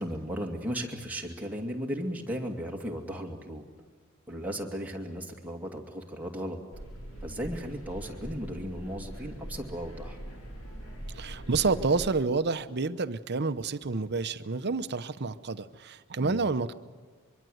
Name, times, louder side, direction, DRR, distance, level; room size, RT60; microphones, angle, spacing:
voice 1, 0.0-3.7 4.3-6.6 7.2-10.2 16.2-16.4, equal, 5° right, 0 dB, 2.4 m, -36 dB
sound 1, 6.7-12.1, right 1 dB, 75° left, 5.7 m, -42 dB
voice 2, 11.1-16.7, right 4 dB, 50° right, 12 dB, 0.8 m, -29 dB
24.5 x 23.0 x 8.0 m, 1.5 s
head